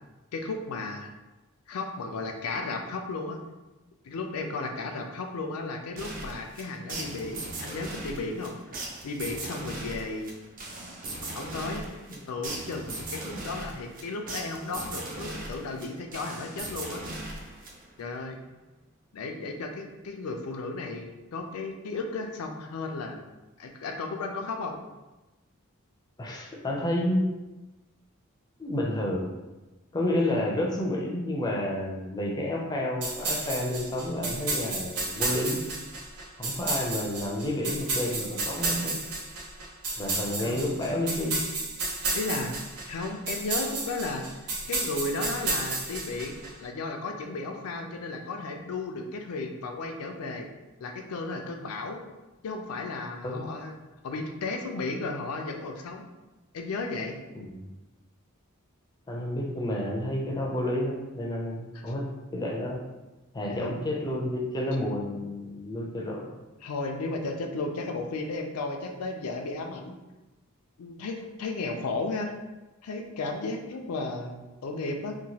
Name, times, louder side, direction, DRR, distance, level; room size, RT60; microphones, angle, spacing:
voice 1, 0.3-1.1 1.7-3.4 4.0-8.5 9.0-10.3 11.2-11.9 12.3-17.0 18.0-18.4 19.1-23.2 23.6-24.8 40.4-40.7 42.1-42.5 42.9-44.3 44.7-50.5 50.8-52.0 52.4-53.8 54.0-56.1 56.5-57.2 61.7-61.9 63.5-63.8 66.6-70.0 70.8-72.3 72.8-75.2, left 3 dB, 90° left, 4 dB, 0.4 m, -34 dB
sound 1, 6.0-18.1, right 2 dB, 40° right, 0.5 m, -39 dB
voice 2, 26.2-27.3 28.6-29.3 29.9-35.6 36.4-39.0 40.0-41.4 53.2-53.5 57.4-57.6 59.1-62.1 62.3-62.8 63.3-66.3, left 1 dB, 20° left, -1 dB, 0.4 m, -30 dB
sound 2, 33.0-46.5, right 3 dB, 80° right, 0.7 m, -32 dB
2.9 x 2.2 x 2.8 m, 1.1 s
head